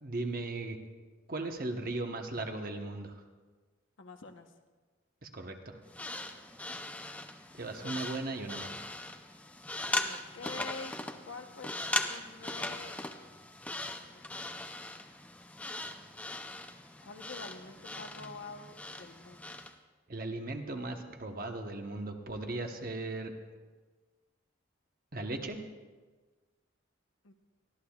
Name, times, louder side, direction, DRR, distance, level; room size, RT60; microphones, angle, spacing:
voice 1, 0.0-0.8 1.3-3.1 5.2-5.8 7.5-8.9 20.1-23.3 25.1-25.6, right 2 dB, 45° right, 4 dB, 1.1 m, -37 dB
voice 2, 4.0-4.5 10.0-11.0 11.3-13.1 13.9-14.2 17.0-19.7 27.2-27.3, left 4 dB, 75° left, 6 dB, 1.0 m, -47 dB
sound 1, 5.9-19.7, left 2 dB, 5° left, 0.5 m, -39 dB
23.5 x 14.5 x 2.4 m, 1.4 s
head